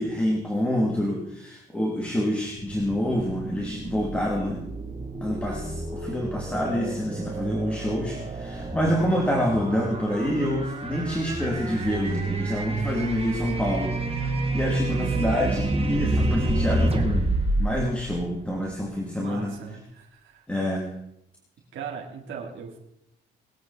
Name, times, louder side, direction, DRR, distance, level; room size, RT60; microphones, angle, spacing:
voice 1, 0.0-4.6 5.2-17.3 17.6-19.5 20.5-20.9, equal, 5° left, -2 dB, 3.2 m, -27 dB
sound 1, 2.6-18.8, right 2 dB, 30° right, 2.6 m, -29 dB
voice 2, 19.1-20.5 21.7-22.8, right 6 dB, 75° right, -1 dB, 3.6 m, -39 dB
23.5 x 8.7 x 4.4 m, 0.78 s
cardioid pair, 90°, 20 cm